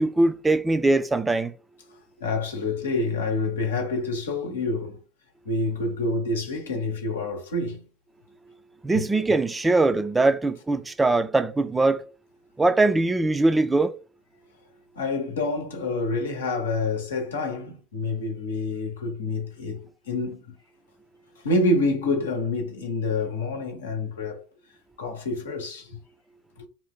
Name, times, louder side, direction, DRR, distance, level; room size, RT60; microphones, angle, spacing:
voice 1, 0.0-1.5 8.8-12.0 12.6-13.9, right 2 dB, 15° right, 0.4 m, -21 dB
voice 2, 1.9-5.0 5.4-7.8 8.9-9.0 14.9-20.5 21.4-24.4 25.0-26.0 26.6-26.7, left 2 dB, 85° left, 0.8 m, -27 dB
2.7 x 2.2 x 3.6 m
hypercardioid pair, 80°, 0 cm